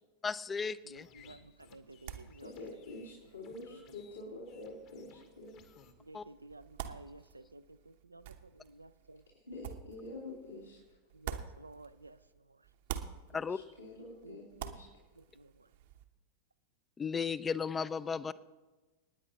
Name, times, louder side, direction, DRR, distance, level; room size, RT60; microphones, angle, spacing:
voice 1, 0.2-1.1 6.1-6.2 13.3-13.6 17.0-18.3, left 5 dB, 15° left, 18 dB, 0.5 m, -35 dB
sound 1, 0.7-5.9, left 7 dB, 40° left, 1.2 m, -62 dB
voice 2, 0.8-3.1 3.7-4.4 6.0-9.2 11.1-12.7 14.2-14.8 15.1-15.7, right 2 dB, 80° right, 13 dB, 0.5 m, -55 dB
sound 2, 1.2-12.3 12.6-16.1, right 9 dB, 55° right, 0.9 m, -49 dB
voice 3, 2.4-5.6 9.4-11.0 13.5-14.9, left 2 dB, 80° left, -8 dB, 3.3 m, -47 dB
28.5 x 9.8 x 2.9 m, 1.2 s
figure-of-eight pair, 90°, 0 cm